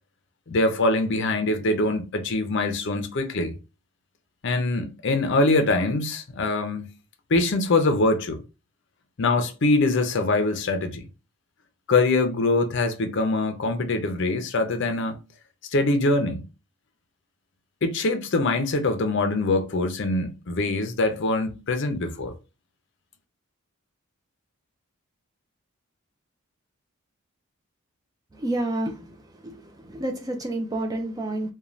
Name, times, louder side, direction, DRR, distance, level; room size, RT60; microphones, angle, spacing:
voice 1, 0.5-3.5 4.4-6.9 7.3-8.4 9.2-11.1 11.9-15.2 15.7-16.4 17.8-22.3, left 2 dB, 55° left, 0.5 m, -23 dB
voice 2, 28.3-29.2 29.4-31.5, right 1 dB, 15° right, 0.3 m, -29 dB
2.5 x 2.3 x 3.1 m
head